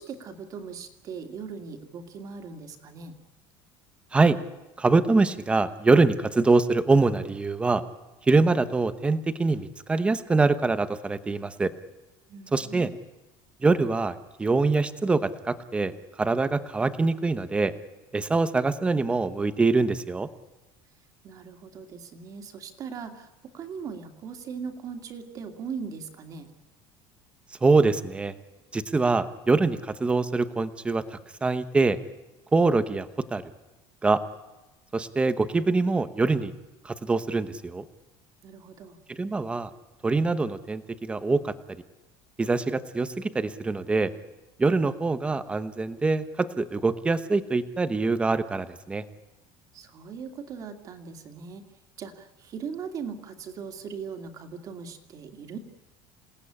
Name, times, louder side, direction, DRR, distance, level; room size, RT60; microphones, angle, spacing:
voice 1, 0.0-3.2 12.3-12.9 21.2-26.5 38.4-39.0 49.7-51.6 52.0-55.6, right 6 dB, 30° right, 6 dB, 2.4 m, -39 dB
voice 2, 4.8-7.8 8.3-11.7 12.5-12.9 13.6-15.9 16.2-17.7 18.1-20.3 27.6-28.3 28.7-32.0 32.5-33.4 34.0-34.2 34.9-36.5 36.8-37.8 39.1-39.7 40.0-41.5 42.4-44.1 44.6-49.0, right 3 dB, 10° right, 12 dB, 1.0 m, -24 dB
28.0 x 18.0 x 10.0 m, 1.1 s
cardioid pair, 180°, 11 cm